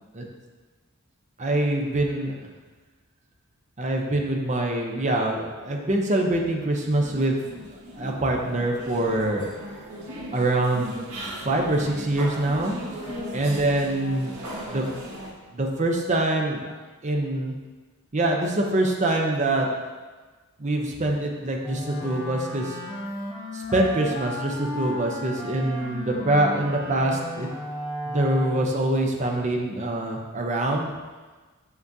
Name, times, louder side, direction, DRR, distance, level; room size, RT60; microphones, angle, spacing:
voice 1, 1.4-2.3 3.8-7.6 8.0-9.5 10.3-11.0 11.4-12.7 13.3-14.8 15.5-16.8 17.0-17.5 18.1-19.7 20.6-22.8 23.5-27.5 28.1-30.9, right 1 dB, 35° right, 1 dB, 0.7 m, -24 dB
sound 1, 6.9-15.3, equal, 80° right, 1.7 m, -37 dB
Wind instrument woodwind instrument, 21.6-29.0, equal, 15° left, 1.8 m, -34 dB
6.0 x 5.9 x 2.7 m, 1.3 s
head